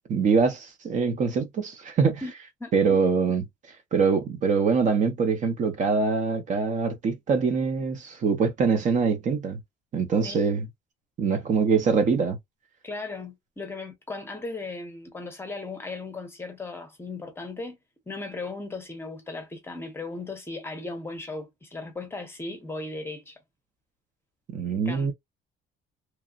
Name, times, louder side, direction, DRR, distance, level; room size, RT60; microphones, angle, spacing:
voice 1, 0.1-2.2 2.7-3.4 3.9-9.6 9.9-10.7 11.2-12.4 24.5-25.1, right 5 dB, 40° right, 0.7 m, -24 dB
voice 2, 12.8-17.8 18.1-23.4 24.7-25.1, left 3 dB, 10° left, 0.8 m, -37 dB
3.0 x 2.1 x 2.4 m
cardioid pair, 160°, 19 cm